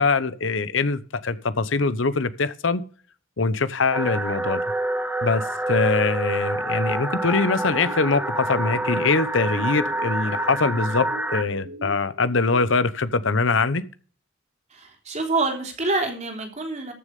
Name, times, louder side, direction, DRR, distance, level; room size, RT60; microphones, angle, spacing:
voice 1, 0.0-2.8 3.4-4.6 5.2-5.4 5.7-13.8, left 4 dB, 80° left, 0.9 m, -23 dB
sound 1, 3.9-11.4, right 1 dB, 10° right, 1.3 m, -27 dB
sound 2, 7.4-12.6, equal, 85° right, 5.6 m, -42 dB
voice 2, 14.7-16.9, right 3 dB, 35° right, 3.3 m, -26 dB
14.0 x 6.6 x 5.3 m
head